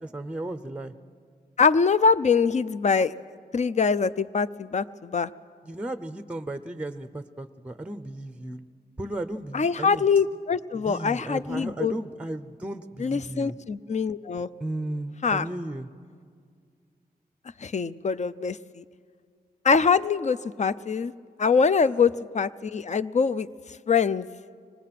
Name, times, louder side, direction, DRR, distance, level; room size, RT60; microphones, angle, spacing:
voice 1, 0.0-0.9 5.6-8.7 9.0-10.1 10.7-13.5 14.6-15.9, right 1 dB, 5° right, 11 dB, 0.6 m, -35 dB
voice 2, 1.6-3.1 3.5-5.3 9.5-11.9 13.0-14.5 15.2-15.5 17.6-18.8 19.6-21.1 21.4-23.5 23.9-24.3, left 5 dB, 45° left, 14 dB, 0.5 m, -23 dB
25.5 x 19.5 x 5.9 m, 2.1 s
wide cardioid pair, 85°, 16 cm